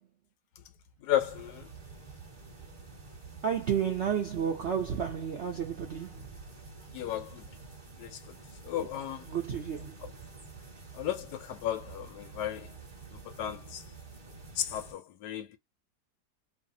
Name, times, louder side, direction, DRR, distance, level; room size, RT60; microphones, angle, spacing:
voice 1, 1.0-1.7 6.9-7.4 8.0-8.2 8.6-9.2 10.0-10.1 10.9-12.7 13.3-13.8 14.6-15.6, left 11 dB, 75° left, 1.1 m, -34 dB
sound 1, 1.2-14.9, right 4 dB, 20° right, 0.8 m, -49 dB
voice 2, 3.4-6.3 9.3-10.0, right 8 dB, 70° right, 0.6 m, -31 dB
3.2 x 2.0 x 2.6 m
omnidirectional pair, 1.8 m